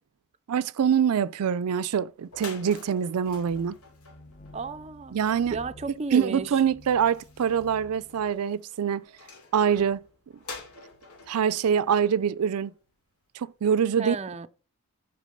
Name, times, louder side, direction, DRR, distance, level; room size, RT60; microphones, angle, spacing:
voice 1, 0.5-3.8 5.1-5.6 6.1-9.0 9.5-10.0 11.3-12.7 13.3-14.2, right 7 dB, 90° right, 0.4 m, -24 dB
sound 1, 1.9-2.0 2.2-13.0, left 3 dB, 85° left, 2.8 m, -48 dB
sound 2, 3.2-8.2, left 1 dB, 35° left, 0.9 m, -51 dB
voice 2, 4.5-5.2 5.5-6.5 14.0-14.5, right 3 dB, 30° right, 0.4 m, -33 dB
8.3 x 5.9 x 5.1 m
head